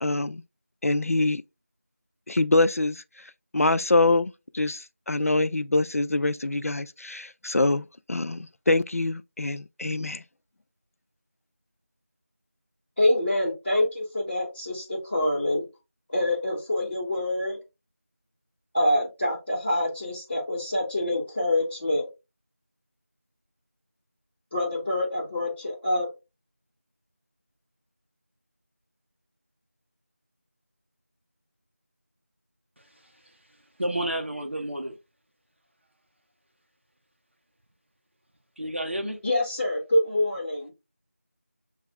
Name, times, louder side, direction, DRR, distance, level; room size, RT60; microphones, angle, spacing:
voice 1, 0.0-0.4 0.8-1.4 2.3-3.0 3.5-10.2, left 2 dB, 70° left, 0.4 m, -25 dB
voice 2, 13.0-15.6 16.1-17.6 18.7-22.0 24.5-26.1 39.2-40.7, left 1 dB, 5° left, 0.9 m, -26 dB
voice 3, 33.8-35.0 38.6-39.2, right 1 dB, 50° right, 0.8 m, -30 dB
6.7 x 2.4 x 2.3 m
figure-of-eight pair, 175°, 8 cm